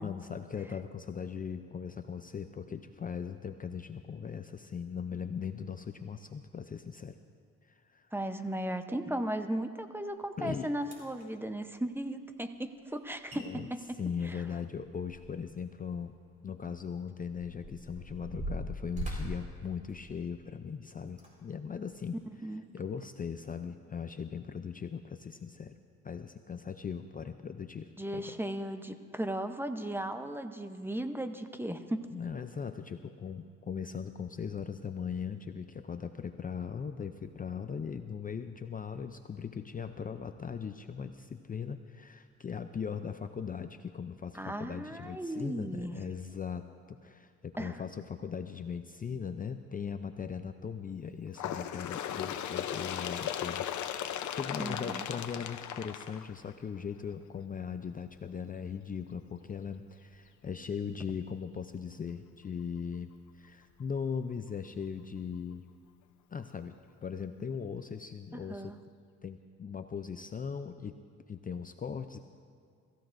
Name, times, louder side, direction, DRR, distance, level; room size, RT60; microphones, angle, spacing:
voice 1, 0.0-7.2 7.6-8.1 10.4-10.7 13.3-13.7 14.0-16.2 16.4-22.2 22.7-25.8 26.0-28.4 32.1-65.7 66.3-68.7 69.2-71.0 71.3-72.2, left 6 dB, 30° left, 8 dB, 0.5 m, -39 dB
voice 2, 8.1-13.8 14.2-14.4 22.4-22.6 28.0-32.0 44.3-46.0 47.6-47.8 54.6-55.0 68.3-68.8, right 1 dB, 5° right, 8 dB, 0.8 m, -36 dB
sound 1, 10.4-10.5 10.8-11.3 13.0-13.1 13.3-13.4 13.8-15.6 15.9-16.0 16.7-20.5 21.1-21.3 21.9-22.0, right 1 dB, 25° right, 4.4 m, -41 dB
Bird, 51.3-56.8 57.7-57.8 58.2-58.3 59.1-59.2 60.1-60.2 61.1-61.2, left 10 dB, 70° left, 0.7 m, -37 dB
23.0 x 15.0 x 2.6 m, 2.2 s
cardioid pair, 90°, 30 cm